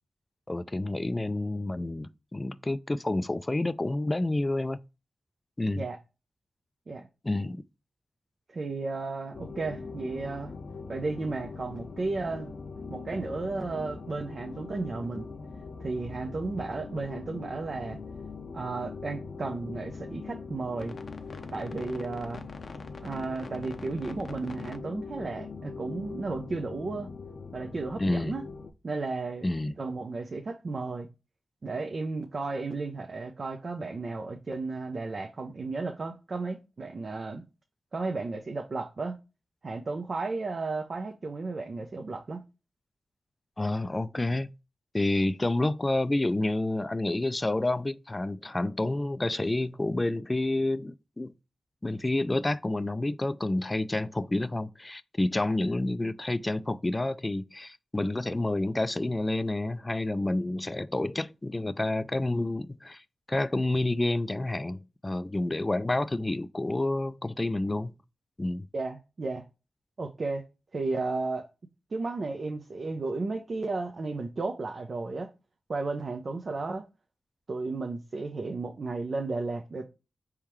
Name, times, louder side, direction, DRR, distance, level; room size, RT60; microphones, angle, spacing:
voice 1, 0.5-4.8 5.6-5.8 7.2-7.6 28.0-28.4 29.4-29.7 43.6-44.5 44.9-51.3 51.8-63.0 63.3-67.9 68.4-68.7, left 2 dB, 30° left, 0.4 m, -29 dB
voice 2, 8.5-10.5 10.9-12.6 12.9-15.3 15.8-18.0 18.5-21.0 21.5-22.4 23.0-27.1 27.5-28.4 28.8-29.5 29.8-31.1 31.6-37.4 37.9-39.2 39.6-42.4 68.7-69.4 70.0-70.4 70.7-71.4 71.9-75.3 75.7-76.8 77.5-79.9, right 3 dB, 60° right, 0.7 m, -33 dB
sound 1, 9.3-28.7, left 4 dB, 65° left, 0.6 m, -41 dB
4.5 x 3.6 x 3.0 m
cardioid pair, 45°, 0 cm